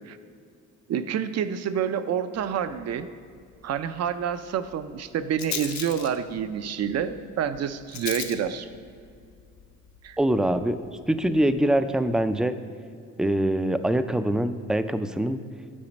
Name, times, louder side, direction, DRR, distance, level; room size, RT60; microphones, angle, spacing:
voice 1, 0.9-3.1 3.6-8.7 10.0-10.2, right 8 dB, 60° right, 12 dB, 0.5 m, -28 dB
Rattle, 2.3-12.3, left 8 dB, 65° left, 0.7 m, -42 dB
voice 2, 10.2-10.8 11.1-12.6 13.2-15.4, right 1 dB, ahead, 10 dB, 0.3 m, -24 dB
8.7 x 5.0 x 5.2 m, 2.3 s
cardioid pair, 90°, 30 cm